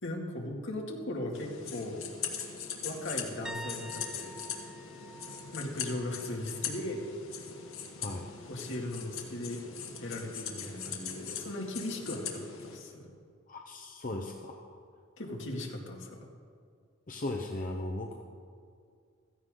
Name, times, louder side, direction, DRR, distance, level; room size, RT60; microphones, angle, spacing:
voice 1, 0.0-2.0 2.4-2.5 2.8-4.4 5.5-7.0 8.5-9.6 10.0-13.1 15.2-16.3, left 1 dB, 65° left, -1 dB, 2.3 m, -38 dB
sound 1, 1.3-12.8, left 7 dB, 80° left, 1.9 m, -41 dB
sound 2, 3.4-7.2 7.5-7.9 10.7-10.8, right 1 dB, 5° right, 0.6 m, -48 dB
voice 2, 13.5-14.8 17.1-18.2, left 2 dB, 40° left, 2 dB, 0.8 m, -37 dB
16.0 x 14.5 x 3.8 m, 2.2 s
head